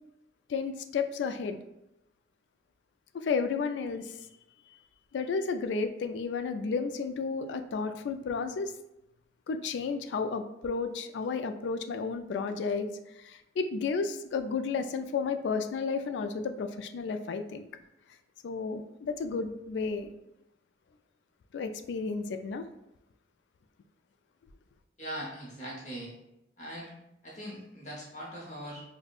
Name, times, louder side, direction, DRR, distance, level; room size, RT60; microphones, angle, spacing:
voice 1, 0.5-1.6 3.1-4.1 5.1-8.7 9.5-12.9 13.2-17.7 18.4-20.1 21.5-22.6, left 5 dB, 85° left, 8 dB, 0.3 m, -32 dB
voice 2, 25.0-26.1 26.6-26.9 27.2-28.8, equal, 40° left, -4 dB, 0.9 m, -40 dB
5.0 x 2.2 x 2.4 m, 0.87 s
head